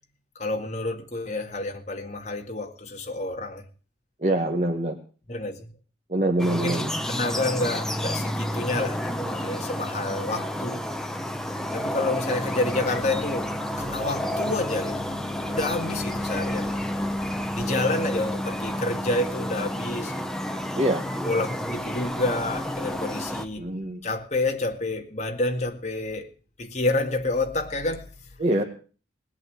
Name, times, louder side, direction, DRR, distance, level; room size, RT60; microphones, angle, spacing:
voice 1, 0.4-3.6 5.3-5.7 6.5-10.8 11.7-20.2 21.2-23.7 24.0-26.3 26.6-28.3, left 2 dB, 35° left, 2.0 m, -29 dB
voice 2, 4.2-5.0 6.1-7.0 20.7-21.0 23.6-24.0 28.4-28.6, right 1 dB, 35° right, 1.6 m, -24 dB
sound 1, 6.4-23.5, left 1 dB, 5° left, 0.9 m, -30 dB
19.5 x 8.3 x 7.9 m
head